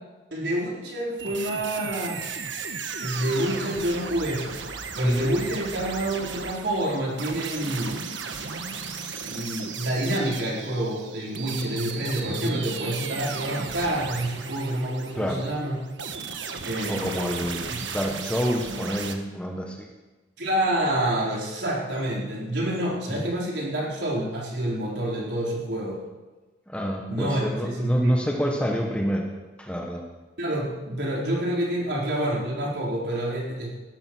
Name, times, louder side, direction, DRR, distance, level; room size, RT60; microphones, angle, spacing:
voice 1, 0.3-2.3 3.0-4.4 4.9-8.0 9.2-15.8 16.6-17.4 17.7-18.0 20.4-26.0 27.1-28.1 30.4-33.7, right 1 dB, 70° right, -4 dB, 4.4 m, -28 dB
sound 1, 1.2-19.1, right 5 dB, 90° right, 1.4 m, -35 dB
voice 2, 12.3-12.6 15.1-15.4 16.9-19.9 23.1-23.2 26.7-29.3 29.6-30.0, equal, 5° left, 1 dB, 1.5 m, -28 dB
18.0 x 13.0 x 4.7 m, 1.2 s
head